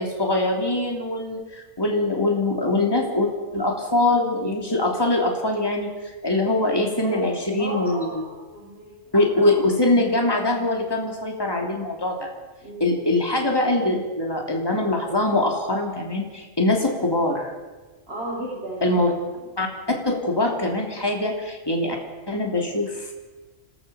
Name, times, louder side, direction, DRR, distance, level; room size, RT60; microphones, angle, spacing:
voice 1, 0.0-5.9 6.2-8.2 9.1-12.3 12.8-17.5 18.8-19.1 19.6-19.7 20.0-22.0 22.3-23.1, left 2 dB, 20° left, 1 dB, 3.1 m, -23 dB
voice 2, 7.6-9.3 12.6-13.0 18.1-19.0, right 1 dB, 55° right, -5 dB, 6.2 m, -34 dB
27.5 x 17.0 x 7.0 m, 1.3 s
omnidirectional pair, 1.3 m